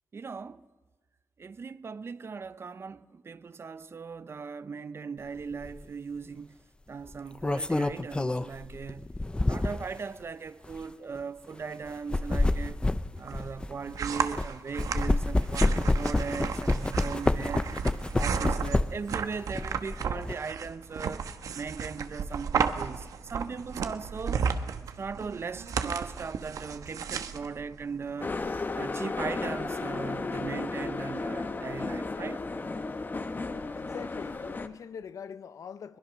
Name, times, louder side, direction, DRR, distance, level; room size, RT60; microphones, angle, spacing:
voice 1, 0.1-0.7 1.4-6.6 6.9-9.1 9.4-12.8 13.2-17.7 18.1-21.2 21.5-24.4 25.0-28.4 28.8-32.4, right 5 dB, 45° right, 0.7 m, -38 dB
sound 1, 5.6-5.8 7.1-10.0 10.6-10.8 11.9-14.5 14.8-19.1 19.5-20.3, left 2 dB, 15° left, 0.7 m, -28 dB
sound 2, 13.2-28.5, right 6 dB, 80° right, 1.2 m, -34 dB
sound 3, 28.2-34.7, left 3 dB, 35° left, 1.3 m, -34 dB
voice 2, 33.7-36.0, left 7 dB, 70° left, 0.9 m, -43 dB
22.0 x 20.5 x 6.3 m
cardioid pair, 80°, 6 cm